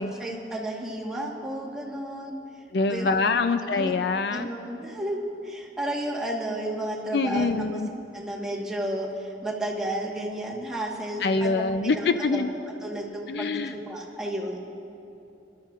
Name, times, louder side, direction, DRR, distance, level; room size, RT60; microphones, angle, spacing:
voice 1, 0.0-2.6 2.9-3.4 3.7-3.9 4.3-7.8 8.1-12.5 12.8-14.6, right 1 dB, 5° right, -4 dB, 1.4 m, -32 dB
voice 2, 2.7-4.5 7.1-7.9 11.2-12.5 13.3-13.7, left 3 dB, 60° left, 9 dB, 0.4 m, -25 dB
27.0 x 12.0 x 2.5 m, 2.9 s
head